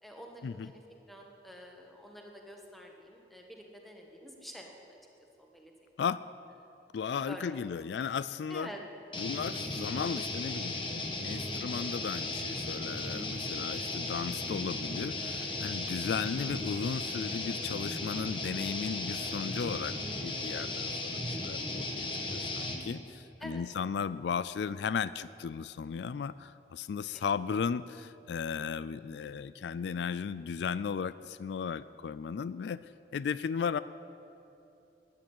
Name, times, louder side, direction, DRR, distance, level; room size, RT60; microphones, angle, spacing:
voice 1, 0.0-0.8 1.1-5.0 5.4-5.7 7.3-7.7 8.5-8.8 23.4-23.6 27.1-27.2, equal, ahead, 1 dB, 1.5 m, -48 dB
voice 2, 6.9-8.7 9.2-32.8 33.1-33.8, left 6 dB, 80° left, 16 dB, 0.3 m, -35 dB
sound 1, 9.1-22.8, left 2 dB, 30° left, 1.4 m, -36 dB
13.5 x 10.5 x 8.9 m, 2.9 s
head